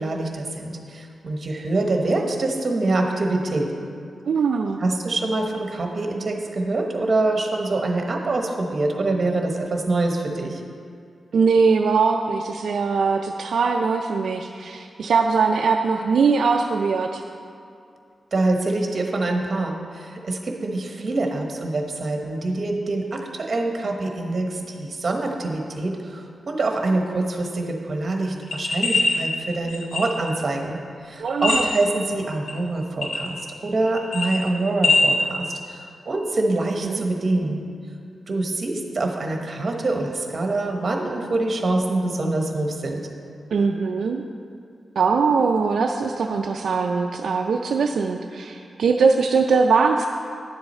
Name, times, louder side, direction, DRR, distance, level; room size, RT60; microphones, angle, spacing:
voice 1, 0.0-3.7 4.8-10.6 18.3-37.6 38.3-43.1, right 2 dB, 45° right, 2 dB, 1.1 m, -25 dB
voice 2, 4.3-4.8 11.3-17.2 31.2-31.7 36.8-37.0 43.5-44.2 45.0-50.1, right 5 dB, 75° right, 3 dB, 0.4 m, -21 dB
sound 1, 28.4-29.2 29.7-30.4 31.3-32.0 32.5-32.6 33.0-33.6 33.9-35.0, left 3 dB, 80° left, 1.5 m, -22 dB
10.5 x 7.0 x 4.3 m, 2.4 s
wide cardioid pair, 115°, 0 cm